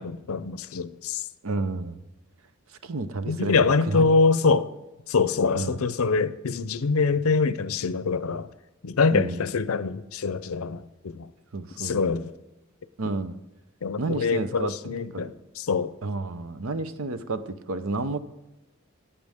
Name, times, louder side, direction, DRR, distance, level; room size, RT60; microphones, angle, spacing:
voice 1, 0.0-1.2 3.3-4.7 5.1-8.5 8.8-11.3 11.8-12.3 13.8-15.9, left 4 dB, 70° left, 0.6 m, -24 dB
voice 2, 1.4-2.0 2.8-4.1 5.5-5.8 9.1-9.4 11.5-12.0 13.0-13.4 14.0-14.7 15.1-15.3 16.0-18.2, right 3 dB, 70° right, 0.8 m, -30 dB
12.0 x 8.6 x 3.6 m
head